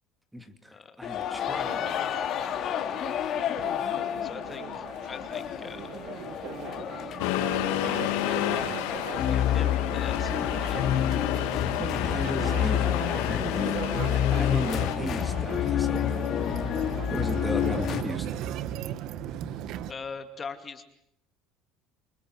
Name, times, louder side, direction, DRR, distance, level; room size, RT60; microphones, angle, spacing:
voice 1, 0.3-1.9 11.8-16.3 17.1-18.3, equal, 5° right, 8 dB, 2.4 m, -36 dB
sound 1, 1.0-18.0, left 10 dB, 45° left, 3.0 m, -29 dB
sound 2, 1.7-19.9, right 11 dB, 60° right, 1.5 m, -38 dB
voice 2, 4.2-5.9 7.8-10.9 19.9-20.8, left 5 dB, 25° left, 8 dB, 2.3 m, -42 dB
Accelerating revving vroom, 7.2-14.9, left 13 dB, 80° left, 3.1 m, -31 dB
28.0 x 25.0 x 7.9 m, 0.77 s
supercardioid pair, 120°, 0 cm